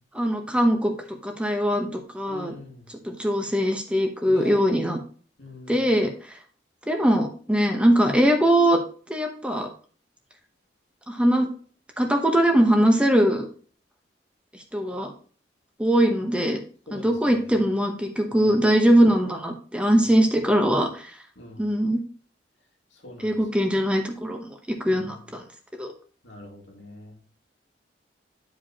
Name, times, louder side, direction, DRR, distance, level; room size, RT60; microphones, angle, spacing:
voice 1, 0.1-2.5 2.9-5.0 5.7-6.4 6.9-8.8 9.1-9.7 11.1-11.5 12.0-13.5 14.7-15.1 15.8-16.6 16.9-21.1 21.6-22.0 23.2-25.4 25.8-25.9, equal, 5° right, 3 dB, 1.0 m, -21 dB
voice 2, 2.3-2.8 4.3-4.6 5.4-5.8 16.9-17.1 18.3-18.5 21.4-21.6 23.0-23.3 26.2-27.1, left 1 dB, 85° left, 0 dB, 2.3 m, -41 dB
10.5 x 4.9 x 2.9 m, 0.41 s
head